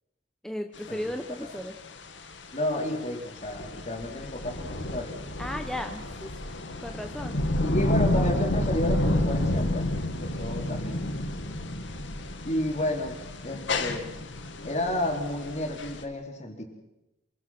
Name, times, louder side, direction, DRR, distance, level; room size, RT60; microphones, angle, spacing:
voice 1, 0.4-1.8 5.4-6.4 6.8-7.4, left 1 dB, 5° left, 5 dB, 1.1 m, -35 dB
sound 1, 0.8-16.0, left 1 dB, 80° left, 2.2 m, -30 dB
voice 2, 2.5-5.2 7.6-9.9 10.2-11.1 12.4-13.2 13.4-14.1 14.6-16.6, left 1 dB, 40° left, 2 dB, 4.5 m, -31 dB
27.5 x 23.5 x 6.2 m, 0.91 s
head